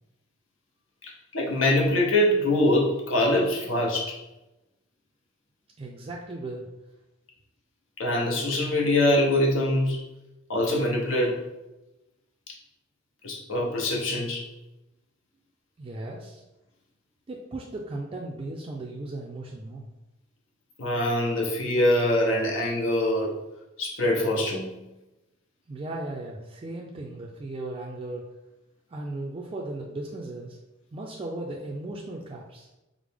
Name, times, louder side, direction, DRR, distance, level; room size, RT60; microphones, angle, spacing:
voice 1, 1.0-4.2 8.0-10.0 10.5-11.4 13.2-14.4 20.8-23.3 23.8-24.7, left 1 dB, 80° left, -1 dB, 0.8 m, -24 dB
voice 2, 5.8-6.7 15.8-16.4 17.3-19.9 25.7-28.3 28.9-30.6 30.9-32.7, right 2 dB, 30° right, -3 dB, 0.4 m, -36 dB
4.8 x 2.0 x 3.4 m, 0.98 s
head